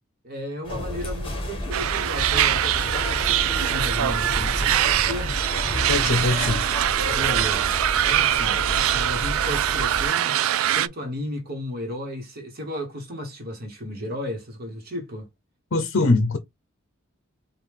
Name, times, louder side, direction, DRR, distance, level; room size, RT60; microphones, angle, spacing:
voice 1, 0.2-5.4 7.1-7.7 8.0-8.6 8.9-15.3, left 1 dB, 50° right, 1.3 m, -34 dB
sound 1, 0.6-10.1, left 1 dB, 25° left, 1.3 m, -31 dB
sound 2, 1.7-10.9, right 11 dB, 90° right, 0.3 m, -23 dB
voice 2, 5.9-6.6 15.7-16.4, left 3 dB, 65° left, 0.6 m, -22 dB
4.8 x 2.5 x 3.5 m
head